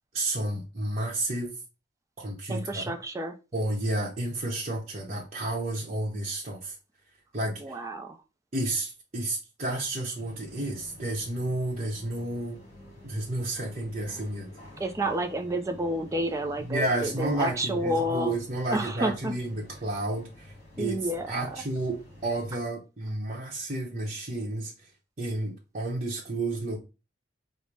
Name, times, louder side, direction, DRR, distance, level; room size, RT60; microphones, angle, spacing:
voice 1, 0.1-1.5 2.2-2.8 3.5-6.8 7.3-7.8 8.5-12.6 13.0-14.5 16.6-21.0 21.3-24.9 25.2-26.8, right 2 dB, 40° right, 0.8 m, -31 dB
voice 2, 2.5-3.3 7.6-8.2 14.8-18.3 18.7-19.3 20.8-21.6, right 1 dB, 15° right, 0.4 m, -30 dB
sound 1, 10.1-22.6, left 1 dB, 35° left, 2.2 m, -50 dB
5.3 x 2.1 x 4.5 m
head